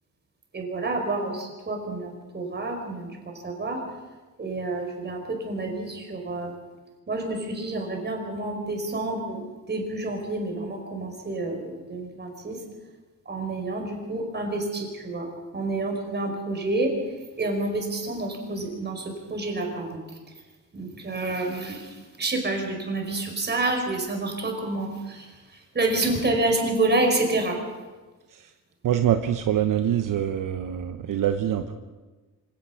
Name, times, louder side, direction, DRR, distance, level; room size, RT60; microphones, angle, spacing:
voice 1, 0.5-3.8 4.4-6.5 7.1-12.6 13.2-15.3 15.5-16.9 17.4-20.0 20.7-25.3 25.7-27.6, right 2 dB, 30° right, 3 dB, 5.0 m, -28 dB
voice 2, 28.8-31.7, right 10 dB, 70° right, 7 dB, 1.0 m, -24 dB
26.0 x 17.5 x 5.8 m, 1.2 s
cardioid pair, 120°, 33 cm